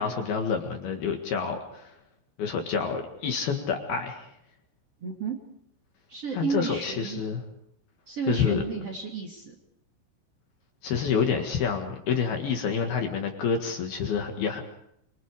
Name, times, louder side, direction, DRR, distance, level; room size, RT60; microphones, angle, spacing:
voice 1, 0.0-1.9 2.4-4.3 6.3-7.4 8.3-8.6 10.8-14.6, left 6 dB, 60° left, 4 dB, 3.3 m, -28 dB
voice 2, 5.0-5.4 6.1-7.2 8.1-9.5, right 6 dB, 35° right, 2 dB, 2.9 m, -32 dB
27.5 x 24.0 x 5.0 m, 0.74 s
omnidirectional pair, 5.7 m